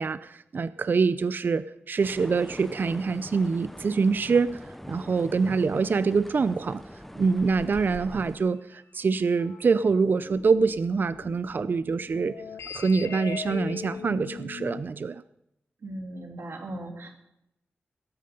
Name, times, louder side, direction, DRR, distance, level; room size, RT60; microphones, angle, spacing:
voice 1, 0.0-6.8 7.2-12.4 12.7-15.2, right 4 dB, 50° right, 15 dB, 0.4 m, -25 dB
sound 1, 2.0-8.4, equal, 5° left, 0.6 m, -43 dB
sound 2, 9.0-14.8, left 6 dB, 90° left, 0.5 m, -40 dB
voice 2, 15.8-17.1, right 1 dB, 70° right, 3 dB, 2.9 m, -38 dB
19.0 x 8.8 x 5.4 m, 0.81 s
wide cardioid pair, 120°, 4 cm